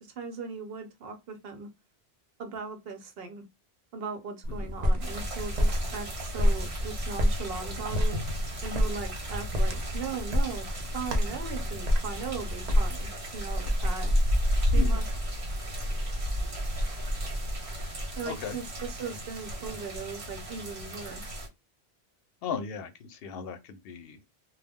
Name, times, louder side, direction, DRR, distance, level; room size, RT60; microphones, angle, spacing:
voice 1, 0.0-1.7 2.4-3.4 3.9-8.1 8.6-10.7 10.9-14.1 14.7-15.0 18.2-21.4, right 5 dB, 70° right, 0.9 m, -38 dB
sound 1, 4.4-13.1, equal, 50° right, 0.6 m, -29 dB
sound 2, 5.0-21.5, equal, 85° right, 1.3 m, -32 dB
voice 2, 14.7-15.2 18.2-18.6 22.4-24.3, left 6 dB, 70° left, 0.7 m, -37 dB
2.3 x 2.0 x 3.4 m
omnidirectional pair, 1.1 m